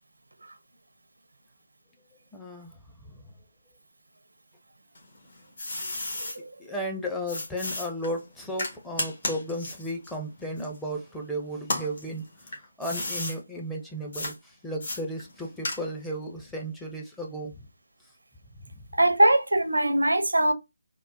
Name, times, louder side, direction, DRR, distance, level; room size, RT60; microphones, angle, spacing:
voice 1, 2.3-2.7 3.1-3.2 6.6-12.2 12.8-17.7 18.8-18.9, equal, 5° left, 0.5 m, -34 dB
sound 1, 4.9-6.4 7.3-11.2 11.6-13.4 14.1-14.3 14.8-16.1, left 2 dB, 55° left, 1.4 m, -34 dB
voice 2, 18.9-20.5, right 1 dB, 80° right, 0.5 m, -21 dB
3.6 x 2.1 x 2.6 m
figure-of-eight pair, 150°, 0 cm